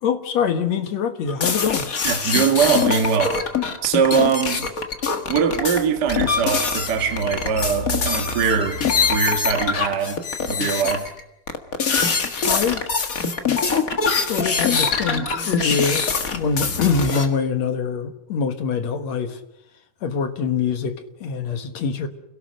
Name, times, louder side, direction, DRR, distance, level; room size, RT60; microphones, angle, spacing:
voice 1, 0.0-1.9 12.4-12.9 14.1-19.4 20.0-22.1, left 6 dB, 60° left, 2.5 m, -24 dB
sound 1, 1.3-11.2 11.5-17.3, left 5 dB, 40° left, 1.4 m, -23 dB
voice 2, 2.0-3.4 3.8-4.7 5.3-8.8 9.1-10.2 10.5-11.1, right 6 dB, 40° right, 1.7 m, -21 dB
29.0 x 17.5 x 6.5 m
omnidirectional pair, 3.7 m